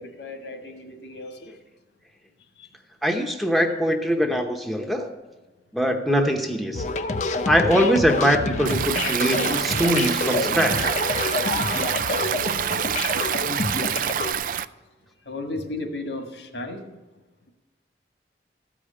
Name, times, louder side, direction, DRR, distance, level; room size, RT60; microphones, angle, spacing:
voice 1, 0.0-1.5 2.6-2.7 15.2-16.8, left 2 dB, 80° left, 4 dB, 1.6 m, -34 dB
voice 2, 3.0-5.1 5.7-6.8 7.5-10.9, equal, ahead, 3 dB, 0.8 m, -22 dB
sound 1, 6.7-14.3, left 3 dB, 40° left, 0.6 m, -28 dB
Stream, 8.6-14.6, right 9 dB, 50° right, 0.3 m, -26 dB
13.5 x 5.0 x 8.5 m, 1.2 s
head